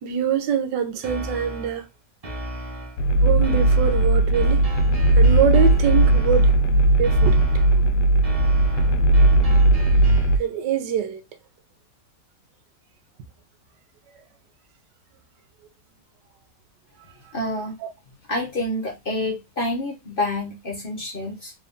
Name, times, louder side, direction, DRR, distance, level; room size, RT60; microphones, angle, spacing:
voice 1, 0.0-1.8 3.2-4.6 5.2-6.5 7.0-7.4 10.4-11.2, right 7 dB, 80° right, 1.4 m, -24 dB
sound 1, 1.0-1.8 2.2-3.0 3.4-6.6 7.0-7.8 8.2-10.4, right 1 dB, 30° right, 0.7 m, -34 dB
sound 2, 3.0-10.4, right 2 dB, 80° left, 1.2 m, -17 dB
voice 2, 17.3-17.7 18.3-21.5, left 1 dB, 45° left, 0.7 m, -28 dB
3.4 x 2.6 x 3.5 m
omnidirectional pair, 1.9 m